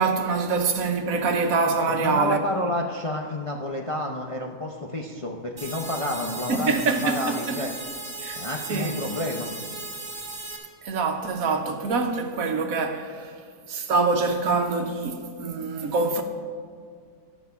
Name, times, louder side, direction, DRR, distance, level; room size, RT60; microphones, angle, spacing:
voice 1, 0.0-2.4 6.5-7.6 8.2-8.4 8.7-8.9 10.8-13.3 13.7-16.2, right 4 dB, 70° right, 1.3 m, -25 dB
voice 2, 1.9-7.7 8.4-9.5, left 1 dB, 35° left, 0.5 m, -30 dB
sound 1, 5.6-10.6, right 2 dB, 40° right, 1.9 m, -36 dB
12.0 x 6.0 x 6.8 m
omnidirectional pair, 1.6 m